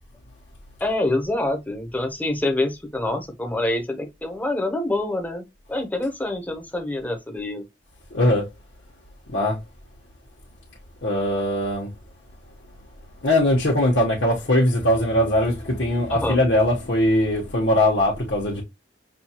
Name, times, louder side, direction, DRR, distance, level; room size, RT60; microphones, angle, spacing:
voice 1, 0.8-7.6 16.1-16.4, left 2 dB, 10° left, 0.7 m, -26 dB
voice 2, 8.1-8.5 9.3-9.6 11.0-11.9 13.2-18.6, left 1 dB, 80° left, 1.0 m, -20 dB
6.0 x 2.3 x 2.8 m
head